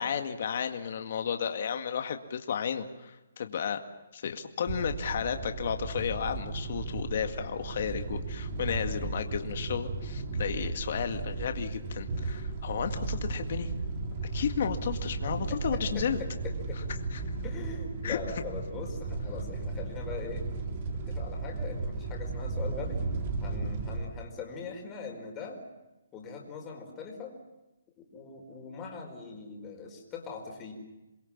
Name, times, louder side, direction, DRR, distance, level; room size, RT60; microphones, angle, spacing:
voice 1, 0.0-3.8 4.1-13.7 14.3-16.2 17.1-17.2 18.0-18.2, left 7 dB, 50° left, 6 dB, 2.1 m, -33 dB
sound 1, 4.7-24.1, right 3 dB, 35° right, 3.8 m, -35 dB
voice 2, 15.2-16.8 17.4-20.4 21.1-23.0 23.4-25.6 26.1-27.4 28.0-30.7, left 5 dB, 15° left, 1 dB, 4.9 m, -41 dB
28.0 x 22.0 x 7.4 m, 1.0 s
hypercardioid pair, 165°, 0 cm